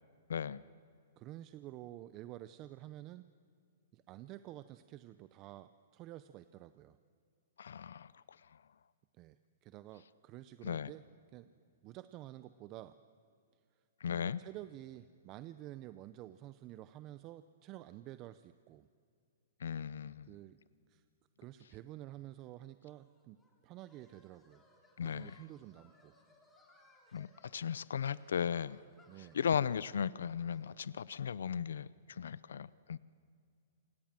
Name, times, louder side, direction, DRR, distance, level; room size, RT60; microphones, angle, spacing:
voice 1, 0.3-0.6 7.6-8.6 10.6-10.9 14.0-14.4 19.6-20.3 25.0-25.4 27.1-28.8 29.3-33.0, left 7 dB, 90° left, 19 dB, 0.6 m, -37 dB
voice 2, 1.2-3.2 3.9-7.0 9.2-11.0 11.3-11.5 11.8-13.0 14.1-18.9 20.2-20.6 20.9-21.0 21.4-23.4 23.6-24.6 25.0-26.2 29.1-29.4, right 14 dB, 30° right, 12 dB, 0.6 m, -50 dB
sound 1, 22.9-31.0, left 2 dB, 10° left, 3.6 m, -68 dB
28.0 x 26.0 x 7.6 m, 2.3 s
hypercardioid pair, 155°, 0 cm